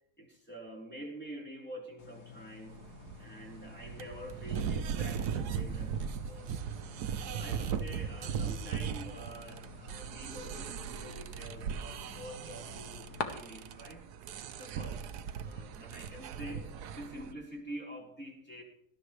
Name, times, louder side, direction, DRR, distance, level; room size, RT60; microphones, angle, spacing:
voice 1, 0.2-2.9 3.2-6.5 7.2-14.0 14.6-15.0 15.3-16.7 17.0-18.6, right 1 dB, 5° left, -3 dB, 4.0 m, -47 dB
sound 1, 2.0-13.3, left 6 dB, 70° left, 1.9 m, -48 dB
sound 2, 2.7-17.3, right 7 dB, 75° right, 1.3 m, -38 dB
19.5 x 13.5 x 3.2 m, 0.70 s
omnidirectional pair, 1.7 m